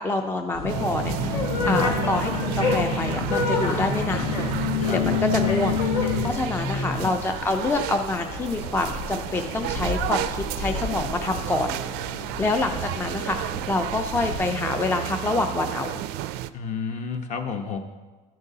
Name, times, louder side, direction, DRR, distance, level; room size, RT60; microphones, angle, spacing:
voice 1, 0.0-4.4 4.9-12.0 12.4-13.4 13.7-16.0, left 2 dB, 10° left, 5 dB, 0.4 m, -27 dB
sound 1, 0.5-14.4, left 3 dB, 70° left, 1.2 m, -37 dB
sound 2, 0.6-6.3, left 3 dB, 90° left, 2.4 m, -25 dB
sound 3, 0.7-16.5, right 14 dB, 65° right, 0.4 m, -33 dB
voice 2, 1.6-2.0 4.8-5.0 6.4-7.2 16.5-17.8, left 4 dB, 40° left, 6 dB, 1.0 m, -31 dB
13.5 x 7.6 x 2.8 m, 1.3 s
cardioid pair, 130°, 19 cm